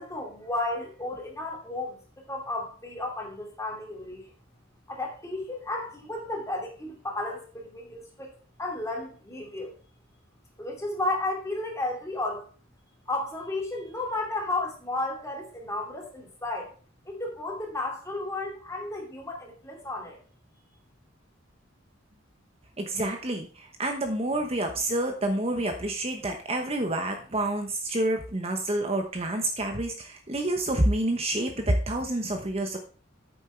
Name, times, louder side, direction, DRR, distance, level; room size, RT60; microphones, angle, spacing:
voice 1, 0.0-2.0 2.3-4.2 4.9-8.3 8.6-9.7 10.6-12.5 13.1-16.7 17.0-20.2, left 2 dB, 15° left, 0 dB, 2.8 m, -33 dB
voice 2, 22.8-32.8, right 1 dB, 30° right, 4 dB, 1.0 m, -28 dB
8.7 x 7.3 x 4.5 m, 0.39 s
head